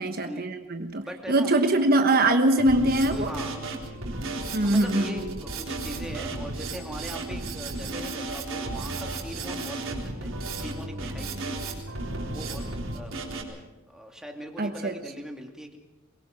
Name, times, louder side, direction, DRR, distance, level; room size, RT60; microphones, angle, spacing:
voice 1, 0.0-3.3 4.5-5.1 14.6-14.9, right 1 dB, 50° right, 7 dB, 1.2 m, -23 dB
voice 2, 1.0-1.6 3.1-11.9 12.2-15.8, equal, 5° right, 1 dB, 2.6 m, -41 dB
Drum kit, 2.6-13.4, right 2 dB, 80° right, 3.9 m, -34 dB
23.0 x 22.5 x 5.9 m, 0.99 s
head